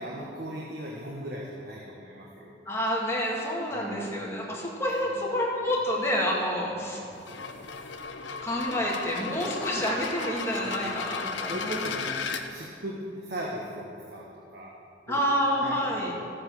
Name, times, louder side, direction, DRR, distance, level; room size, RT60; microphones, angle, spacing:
voice 1, 0.0-2.6 3.7-4.2 5.1-5.2 6.7-7.0 10.6-10.9 11.4-14.7 15.1-15.2 15.5-16.2, equal, 60° right, -3 dB, 1.4 m, -38 dB
voice 2, 2.7-7.0 8.4-11.8 15.1-16.1, equal, 15° left, -4 dB, 2.1 m, -28 dB
sound 1, 7.1-12.4, left 5 dB, 90° left, 0.9 m, -35 dB
14.0 x 7.8 x 6.4 m, 2.5 s
head